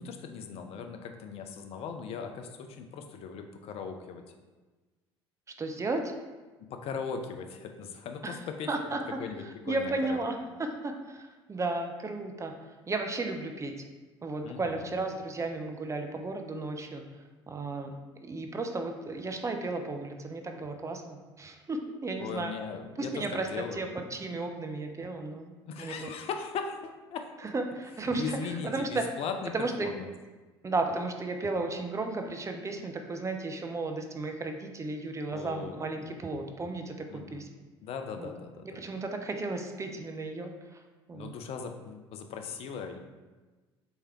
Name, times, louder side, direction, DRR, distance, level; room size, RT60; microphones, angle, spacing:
voice 1, 0.0-4.2 6.6-8.7 9.2-10.3 14.4-15.0 22.2-23.8 25.7-27.3 28.1-30.1 35.3-35.9 37.1-37.4 37.8-38.8 41.1-43.0, left 6 dB, 45° left, 6 dB, 0.6 m, -38 dB
voice 2, 5.6-6.1 8.2-8.4 8.7-9.0 9.4-13.8 14.2-17.9 18.2-22.5 23.0-25.5 25.8-26.1 27.4-29.0 29.5-29.9 30.6-37.5 38.2-38.3 38.8-40.8 41.1-41.3, right 3 dB, 20° right, 5 dB, 0.6 m, -34 dB
4.4 x 3.3 x 3.4 m, 1.3 s
figure-of-eight pair, 60°, 14 cm